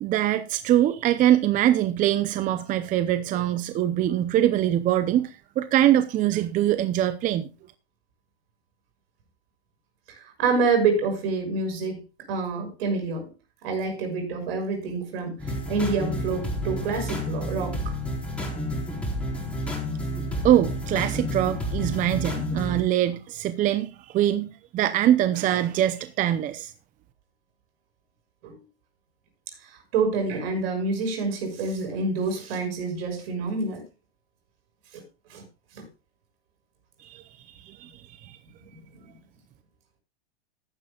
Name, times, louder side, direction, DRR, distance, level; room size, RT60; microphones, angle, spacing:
voice 1, 0.0-7.5 20.4-26.7 37.0-38.4, right 12 dB, 25° right, 0.6 m, -23 dB
voice 2, 10.2-12.0 12.3-13.3 13.6-18.0 28.4-28.6 29.6-33.8 34.9-35.0 35.3-35.4 35.7-35.8 38.6-39.2, right 4 dB, 65° right, 6.3 m, -27 dB
sound 1, 15.4-22.8, left 1 dB, 5° left, 4.1 m, -30 dB
15.0 x 11.0 x 2.4 m
supercardioid pair, 130°, 31 cm